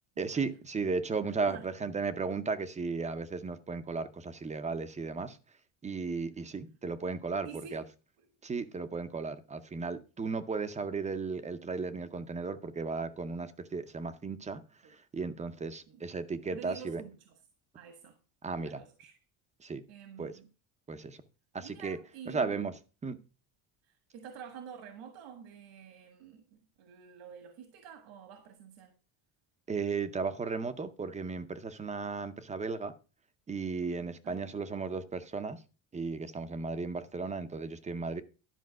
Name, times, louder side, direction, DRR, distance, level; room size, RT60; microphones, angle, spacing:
voice 1, 0.2-5.4 5.8-7.8 8.4-14.6 14.9-17.0 18.4-18.8 19.6-19.8 20.2-20.3 20.9-21.2 21.5-22.0 22.3-22.7 23.0-23.2 29.7-32.9 33.5-35.6 35.9-38.2, right 4 dB, 15° right, 0.6 m, -35 dB
voice 2, 1.3-1.8 7.4-7.8 8.2-8.3 14.8-15.0 15.9-16.0 16.5-17.4 17.7-18.2 18.6-19.1 19.9-20.5 21.6-22.6 23.8-28.9 34.2-34.5, right 7 dB, 70° right, 1.7 m, -49 dB
12.0 x 5.1 x 6.3 m
cardioid pair, 160°, 46 cm